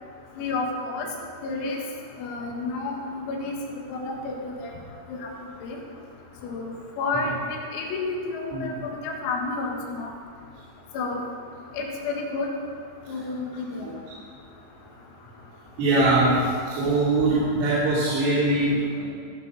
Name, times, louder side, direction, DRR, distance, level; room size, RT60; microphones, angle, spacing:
voice 1, 0.4-1.1 1.4-1.8 2.2-3.6 3.9-4.7 5.1-5.3 5.6-5.8 6.4-6.7 7.0-10.1 10.9-11.2 11.7-12.5 13.1-13.9, left 3 dB, 90° left, 0 dB, 4.4 m, -30 dB
voice 2, 15.8-19.1, right 2 dB, 75° right, -12 dB, 5.5 m, -22 dB
20.5 x 7.0 x 5.5 m, 2.2 s
omnidirectional pair, 6.0 m